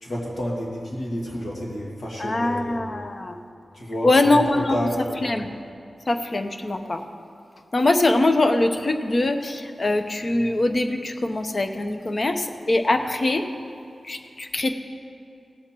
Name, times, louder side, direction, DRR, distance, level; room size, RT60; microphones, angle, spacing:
voice 1, 0.0-2.8 3.8-4.4 4.7-5.2, equal, 70° left, -4 dB, 2.2 m, -30 dB
voice 2, 2.2-3.4 4.0-4.9 5.2-5.6 6.1-7.0 7.7-13.5 14.0-14.7, left 2 dB, 40° left, 6 dB, 0.7 m, -22 dB
17.5 x 7.7 x 4.5 m, 2.6 s
wide cardioid pair, 110°, 0 cm